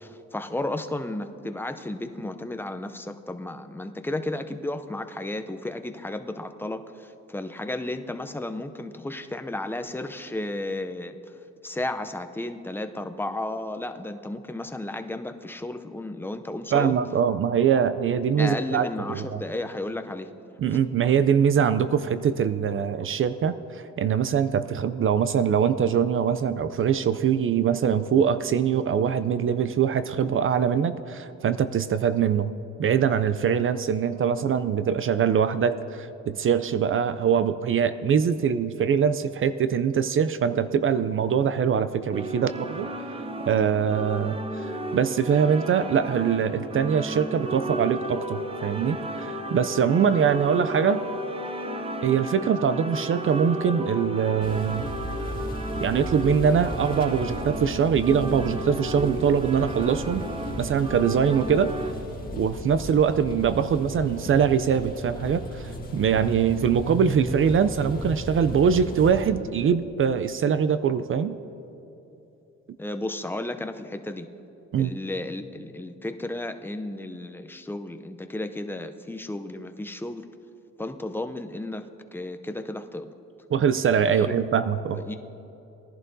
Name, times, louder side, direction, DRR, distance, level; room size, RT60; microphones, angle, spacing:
voice 1, 0.0-11.2 11.6-16.9 18.4-20.3 20.7-20.8 72.8-74.3 74.8-80.3 80.8-81.8 82.1-83.1 84.1-84.4 85.0-85.2, left 1 dB, 5° left, 7 dB, 0.5 m, -33 dB
voice 2, 16.7-19.4 20.6-32.5 32.8-42.9 43.5-51.1 52.0-54.9 55.8-60.2 60.6-61.7 62.3-71.4 74.7-74.9 83.5-85.0, right 7 dB, 45° right, 12 dB, 0.4 m, -23 dB
sound 1, 42.1-61.9, right 1 dB, 20° right, 0.8 m, -34 dB
sound 2, 54.4-69.3, equal, 30° left, 1.9 m, -36 dB
19.0 x 11.0 x 2.7 m, 2.9 s
cardioid pair, 90°, 30 cm